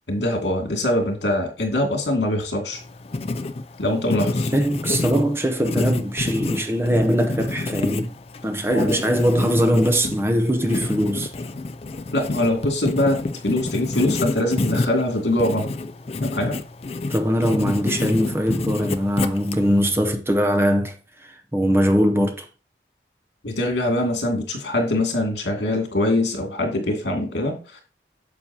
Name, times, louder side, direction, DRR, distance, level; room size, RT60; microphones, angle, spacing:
voice 1, 0.1-2.8 3.8-4.5 8.7-9.0 12.1-15.7 16.2-16.6 23.4-27.8, left 1 dB, 85° left, 2.6 m, -23 dB
Writing, 2.7-19.9, left 2 dB, 35° left, 0.4 m, -28 dB
voice 2, 4.5-8.1 8.4-11.3 17.1-22.5, equal, 15° right, 0.7 m, -21 dB
9.2 x 7.1 x 2.9 m
head